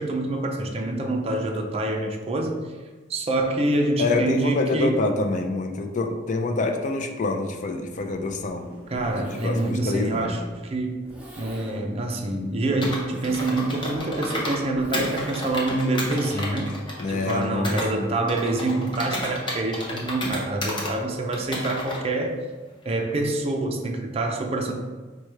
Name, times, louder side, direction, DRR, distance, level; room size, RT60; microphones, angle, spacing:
voice 1, 0.0-2.7 3.1-5.0 8.9-11.0 11.3-16.7 17.1-22.4 22.9-24.8, right 2 dB, 30° right, 2 dB, 0.5 m, -26 dB
voice 2, 4.0-8.7 8.9-10.3 17.0-18.1, left 3 dB, 40° left, 5 dB, 0.4 m, -26 dB
Zipper (clothing), 7.9-15.8, equal, 10° right, 0.8 m, -44 dB
Computer keyboard, 12.8-14.6 14.9-17.9 18.3-20.9 21.3-22.0, left 1 dB, 25° left, 0.8 m, -32 dB
4.7 x 2.2 x 4.4 m, 1.3 s
head